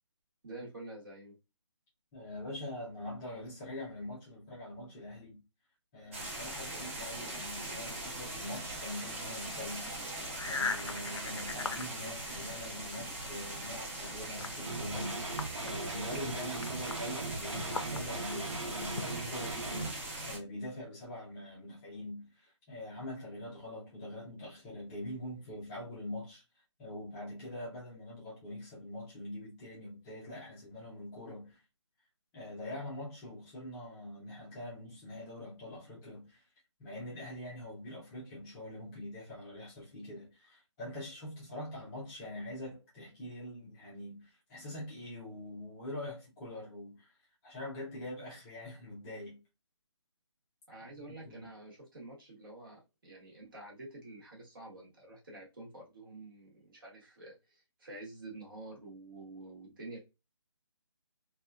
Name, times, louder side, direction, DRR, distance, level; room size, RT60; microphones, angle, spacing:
voice 1, 0.4-1.4 50.7-60.0, right 2 dB, 45° right, 1.1 m, -48 dB
voice 2, 2.1-5.4 5.9-26.4 26.8-31.6 32.3-36.4 36.8-47.1 47.4-49.4 50.7-51.5, left 1 dB, 10° left, 0.5 m, -44 dB
sound 1, 6.1-20.4, right 1 dB, 25° right, 0.8 m, -41 dB
sound 2, 9.7-13.0 13.3-19.4, left 4 dB, 70° left, 0.6 m, -42 dB
sound 3, 14.6-19.9, right 3 dB, 80° right, 0.9 m, -39 dB
2.8 x 2.3 x 2.3 m
hypercardioid pair, 165°, 16 cm